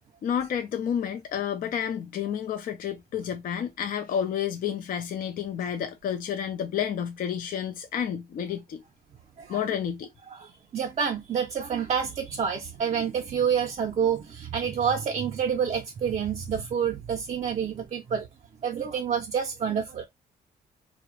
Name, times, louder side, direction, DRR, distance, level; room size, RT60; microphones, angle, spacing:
voice 1, 0.2-8.8 9.5-10.1, left 8 dB, 60° left, 0.4 m, -30 dB
voice 2, 10.3-18.3 18.6-20.1, right 7 dB, 45° right, 0.5 m, -28 dB
2.3 x 2.0 x 3.0 m
cardioid pair, 100°, 16 cm